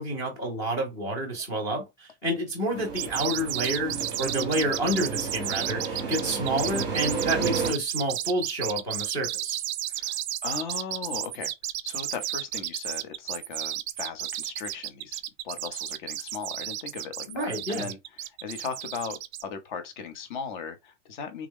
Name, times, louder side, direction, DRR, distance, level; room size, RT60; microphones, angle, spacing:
voice 1, 0.0-9.6 17.3-17.9, right 1 dB, 10° left, 0.4 m, -29 dB
sound 1, 2.7-7.7, right 5 dB, 10° right, 0.8 m, -32 dB
sound 2, 3.0-19.4, right 13 dB, 60° right, 0.5 m, -33 dB
voice 2, 9.9-11.5 11.8-21.5, left 6 dB, 40° left, 0.7 m, -38 dB
3.5 x 2.1 x 3.5 m
supercardioid pair, 170°, 37 cm